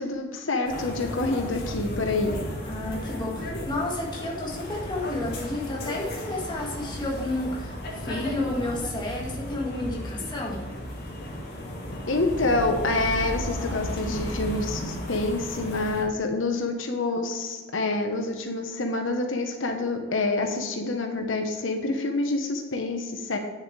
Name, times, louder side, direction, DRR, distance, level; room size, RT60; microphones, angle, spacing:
voice 1, 0.0-2.3 12.1-23.4, left 2 dB, 90° left, 4 dB, 1.1 m, -27 dB
sound 1, 0.6-16.0, equal, 60° left, 2.6 m, -34 dB
voice 2, 2.7-10.6, left 2 dB, 25° left, -2 dB, 1.9 m, -31 dB
9.8 x 7.2 x 3.3 m, 1.3 s
head